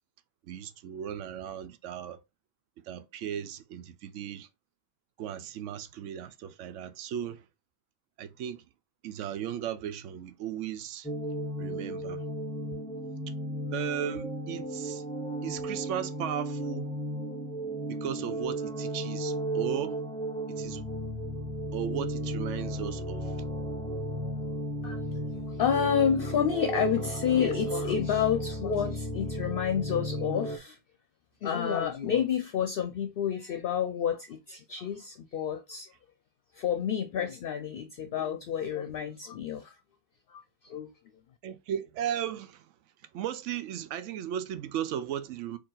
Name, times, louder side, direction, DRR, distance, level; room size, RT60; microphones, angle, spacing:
voice 1, 0.4-2.2 2.8-4.5 5.2-7.4 8.2-8.6 9.0-11.1 11.6-12.2 13.7-15.0 15.4-16.9 17.9-20.0 20.5-20.8 21.7-23.3 41.4-42.7 43.1-45.6, right 10 dB, 85° right, 0.9 m, -36 dB
sound 1, 11.0-30.6, right 1 dB, 5° left, 0.4 m, -34 dB
voice 2, 25.3-30.8 31.4-35.9 36.5-39.7 40.3-40.9, left 8 dB, 60° left, 0.7 m, -29 dB
4.5 x 2.8 x 3.8 m
omnidirectional pair, 1.2 m